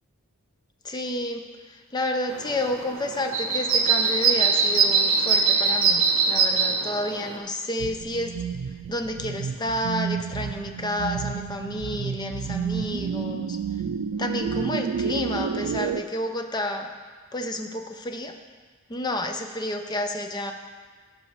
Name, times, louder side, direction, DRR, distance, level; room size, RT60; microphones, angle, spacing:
voice 1, 0.8-8.3 8.9-13.6 14.2-16.9 17.3-18.3 18.9-20.5, left 1 dB, 20° left, 5 dB, 0.5 m, -30 dB
sound 1, 2.3-7.4, right 5 dB, 65° right, 1.1 m, -22 dB
sound 2, 7.8-16.0, right 6 dB, 85° right, 0.4 m, -30 dB
14.5 x 5.3 x 3.1 m, 1.5 s
head